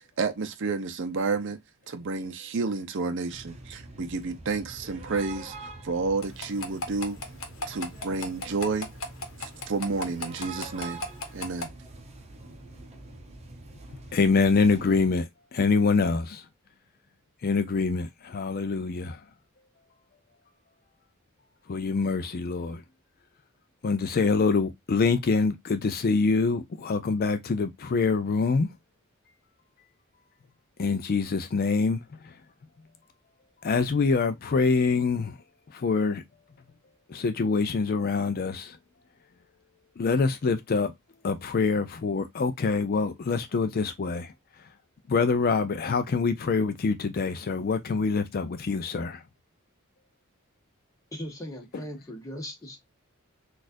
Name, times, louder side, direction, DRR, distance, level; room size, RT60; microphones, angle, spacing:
voice 1, 0.0-1.6 1.9-7.2 7.7-8.9 9.4-11.0 11.3-11.7, right 4 dB, 55° right, 0.6 m, -30 dB
sound 1, 3.3-15.1, right 2 dB, 30° right, 0.8 m, -45 dB
sound 2, 6.2-11.7, left 2 dB, 65° left, 0.9 m, -34 dB
voice 2, 14.1-16.4 17.4-19.2 21.7-22.8 23.8-28.7 30.8-32.3 33.6-35.4 35.7-36.2 37.1-38.8 40.0-40.9 41.2-44.3 45.1-49.2, left 4 dB, 45° left, 0.4 m, -25 dB
voice 3, 51.1-52.8, equal, 15° left, 1.2 m, -38 dB
4.1 x 2.4 x 2.4 m
head